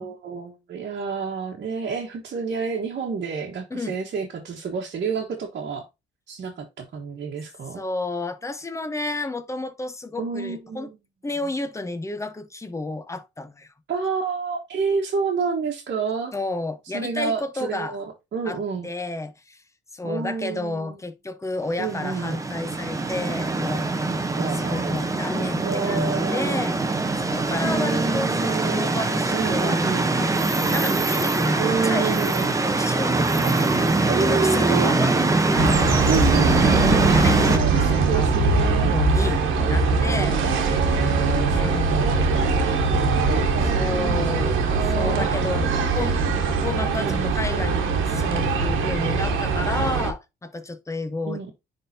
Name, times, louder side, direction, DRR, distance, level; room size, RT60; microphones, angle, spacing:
voice 1, 0.0-5.8 6.3-7.8 10.2-11.0 13.9-16.3 16.8-18.9 20.0-21.0 21.8-22.4 24.4-26.7 27.6-29.1 29.3-30.1 31.6-32.6 33.4-33.5 34.1-35.3 36.1-37.2 37.5-39.0 40.4-44.4 44.7-45.3 46.6-47.4 51.2-51.5, right 5 dB, 55° right, 1.3 m, -29 dB
voice 2, 7.7-10.9 11.2-13.7 16.3-18.0 18.5-18.6 18.8-19.6 19.9-23.9 24.5-26.8 27.2-30.3 30.6-35.8 36.6-38.4 38.8-40.4 41.5-42.1 43.7-44.6 44.9-51.4, left 2 dB, 15° left, 0.8 m, -31 dB
sound 1, 21.8-37.6, right 3 dB, 15° right, 0.8 m, -23 dB
sound 2, 35.6-50.1, right 4 dB, 90° right, 1.3 m, -22 dB
10.0 x 3.6 x 2.7 m
cardioid pair, 90°, 20 cm